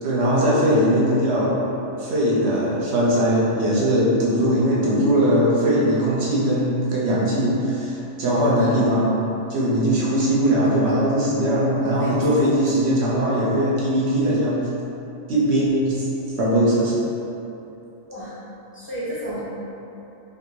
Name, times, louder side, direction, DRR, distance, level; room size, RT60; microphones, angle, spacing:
voice 1, 0.0-1.7 2.0-9.2 9.5-14.6 15.3-16.1 16.4-16.9, equal, 60° right, -7 dB, 1.0 m, -20 dB
voice 2, 8.5-8.8 9.3-9.5 12.0-12.1 12.4-12.8 18.1-18.4 18.7-19.5, equal, 15° left, -11 dB, 0.6 m, -33 dB
3.6 x 2.4 x 2.9 m, 2.9 s
omnidirectional pair, 1.4 m